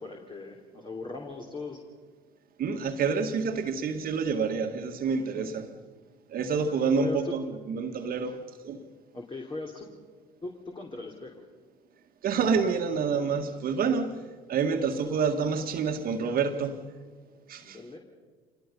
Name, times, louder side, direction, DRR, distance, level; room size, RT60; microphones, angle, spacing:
voice 1, 0.0-1.8 5.2-5.5 6.7-7.4 8.2-8.3 9.1-9.9 10.4-11.4 17.6-18.0, left 3 dB, 25° left, 3.2 m, -39 dB
voice 2, 2.6-5.7 6.3-8.4 8.6-8.8 12.2-14.2 14.5-16.8 17.5-17.8, right 5 dB, 50° right, 1.8 m, -28 dB
26.5 x 20.5 x 5.5 m
hypercardioid pair, 65°, 19 cm